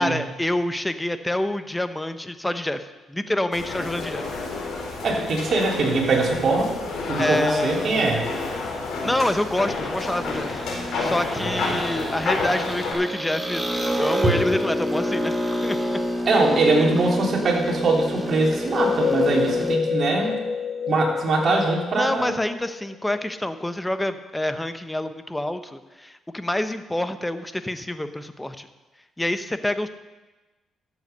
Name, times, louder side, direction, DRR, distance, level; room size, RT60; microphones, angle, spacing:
voice 1, 0.0-2.8 3.1-4.3 7.2-8.2 9.0-13.6 14.0-15.4 15.6-16.0 21.9-28.7 29.2-29.9, left 1 dB, 10° left, 10 dB, 0.9 m, -27 dB
sound 1, 3.5-12.9, left 3 dB, 75° left, 4.4 m, -30 dB
voice 2, 5.0-6.7 7.1-8.3 11.4-11.6 16.2-20.4 20.9-22.3, right 3 dB, 50° right, -1 dB, 3.2 m, -22 dB
sound 2, 10.0-19.8, equal, 10° right, 1.5 m, -28 dB
sound 3, 18.5-23.1, left 6 dB, 50° left, 0.7 m, -27 dB
13.0 x 8.1 x 6.7 m, 1.2 s
cardioid pair, 90°, 0 cm